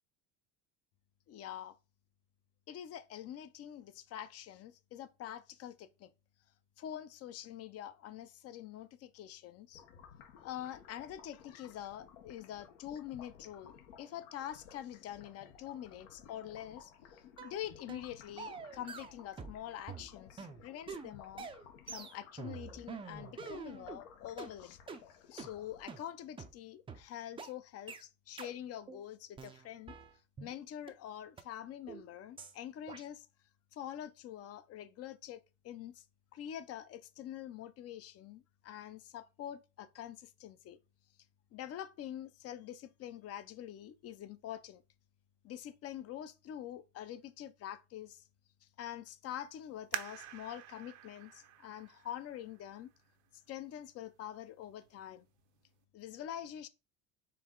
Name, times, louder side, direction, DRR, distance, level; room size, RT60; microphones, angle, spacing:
voice 1, 1.3-1.7 2.7-6.1 6.8-9.8 10.4-21.5 21.9-24.8 25.3-30.0 30.4-33.3 33.7-36.0 36.3-40.8 41.5-44.8 45.4-48.2 48.6-52.9 53.3-55.3 55.9-56.7, left 11 dB, 40° left, 0.5 m, -45 dB
sound 1, 9.7-26.2, left 8 dB, 80° left, 1.0 m, -57 dB
sound 2, 17.4-17.6 17.9-18.1 18.4-19.6 19.9-24.0 24.4-24.5 24.9-25.0 25.4-25.5 25.9-26.0 26.4-26.5 26.9-27.0 27.4-27.5 27.9-28.0 28.4-28.5 28.9-29.0 29.4-30.5 30.9-31.0 31.4-31.5 31.9-32.0 32.4-32.5 32.9-33.0, right 5 dB, 15° right, 0.4 m, -46 dB
sound 3, 49.9-53.3 53.9-54.0 54.6-55.0 55.4-55.5, right 12 dB, 80° right, 0.8 m, -46 dB
4.6 x 3.0 x 3.7 m
supercardioid pair, 120°, 38 cm